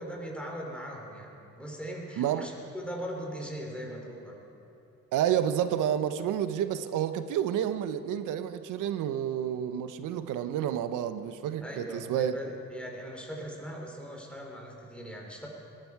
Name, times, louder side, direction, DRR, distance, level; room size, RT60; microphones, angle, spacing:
voice 1, 0.0-4.4 11.6-15.5, equal, 5° left, -1 dB, 3.3 m, -40 dB
voice 2, 2.2-2.5 5.1-12.3, right 10 dB, 90° right, 11 dB, 0.8 m, -29 dB
20.5 x 12.0 x 4.7 m, 3.0 s
cardioid pair, 90°, 30 cm